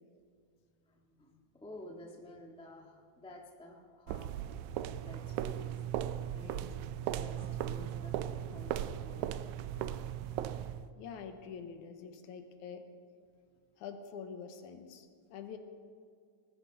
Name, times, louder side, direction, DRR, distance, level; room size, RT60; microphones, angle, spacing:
voice 1, 0.9-4.3 5.0-6.6 7.0-9.4, left 1 dB, 5° left, 0 dB, 0.5 m, -52 dB
sound 1, 4.1-10.9, right 11 dB, 80° right, 1.8 m, -37 dB
voice 2, 11.0-12.9 13.8-15.6, left 6 dB, 75° left, 7 dB, 2.3 m, -46 dB
19.0 x 15.0 x 4.0 m, 2.2 s
omnidirectional pair, 3.7 m